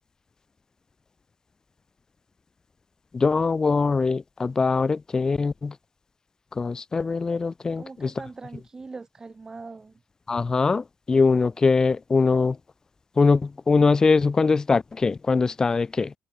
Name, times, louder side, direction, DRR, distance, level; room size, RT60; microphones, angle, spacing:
voice 1, 3.1-5.7 6.5-8.1 10.3-12.6 13.2-16.1, left 4 dB, 25° left, 1.1 m, -22 dB
voice 2, 7.8-9.9, right 4 dB, 25° right, 6.1 m, -41 dB
cardioid pair, 105°, 3 cm